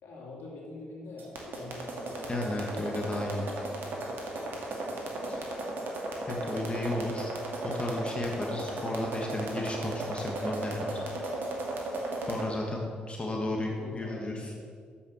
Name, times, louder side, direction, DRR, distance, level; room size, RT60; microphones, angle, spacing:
voice 1, 0.0-5.4 13.2-14.5, left 2 dB, 65° left, -3 dB, 2.9 m, -46 dB
sound 1, 1.2-12.5, right 2 dB, 60° right, 2.2 m, -35 dB
voice 2, 2.3-3.4 5.3-5.4 6.3-7.3 7.7-11.0 12.3-14.5, left 1 dB, 30° left, 0 dB, 1.6 m, -33 dB
7.4 x 7.1 x 7.1 m, 2.1 s
hypercardioid pair, 45°, 4 cm